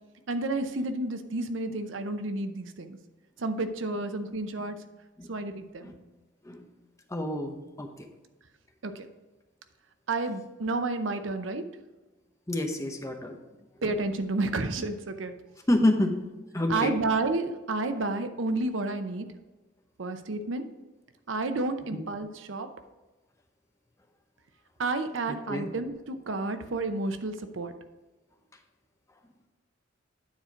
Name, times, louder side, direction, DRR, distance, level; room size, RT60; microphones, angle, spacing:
voice 1, 0.3-3.0 3.4-4.8 5.3-5.9 8.8-9.0 10.1-11.6 13.8-15.3 16.7-19.3 20.0-20.7 21.3-22.7 24.8-27.7, right 2 dB, 80° right, 9 dB, 0.7 m, -30 dB
voice 2, 7.1-8.1 12.5-13.4 15.7-16.3 16.5-17.0 21.9-22.0 25.3-25.7, left 1 dB, 15° left, 4 dB, 0.9 m, -28 dB
9.5 x 4.4 x 4.9 m, 1.1 s
head